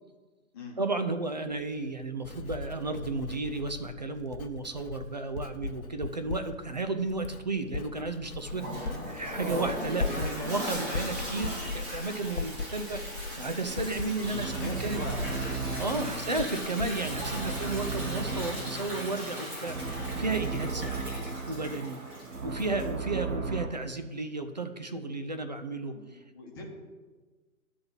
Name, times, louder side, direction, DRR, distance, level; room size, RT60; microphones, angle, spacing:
voice 1, 0.8-15.0 15.8-21.2 21.5-22.0 22.4-26.2, right 3 dB, 30° right, 8 dB, 0.4 m, -33 dB
Writing, 1.5-18.6 18.8-19.3, left 3 dB, 75° left, 0.8 m, -39 dB
Toilet flush, 8.4-23.0, equal, 10° right, 1.5 m, -39 dB
sound 1, 13.7-23.7, right 4 dB, 75° right, 1.1 m, -36 dB
voice 2, 14.2-15.6 16.0-16.2 17.4-17.9 25.9-26.6, left 3 dB, 15° left, -1 dB, 1.1 m, -44 dB
9.5 x 4.0 x 7.3 m, 1.3 s
figure-of-eight pair, 140°, 42 cm